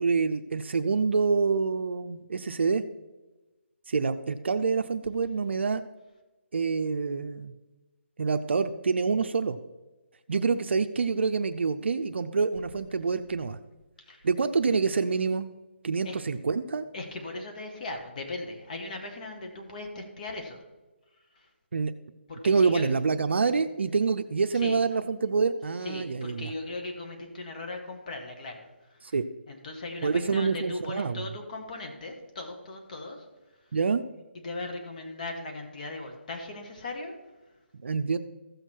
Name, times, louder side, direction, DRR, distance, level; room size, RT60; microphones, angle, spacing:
voice 1, 0.0-2.8 3.9-5.8 6.5-7.5 8.2-9.6 10.3-13.6 14.2-15.5 15.8-16.8 21.7-21.9 22.4-26.5 29.0-29.2 30.0-31.2 33.7-34.0 37.8-38.2, right 4 dB, 65° right, 8 dB, 0.6 m, -26 dB
voice 2, 16.9-20.6 21.3-21.5 22.3-22.9 24.5-24.8 25.8-29.1 29.5-33.3 34.4-37.2, left 2 dB, 40° left, 3 dB, 1.6 m, -38 dB
15.0 x 6.5 x 4.5 m, 1.1 s
hypercardioid pair, 165°, 7 cm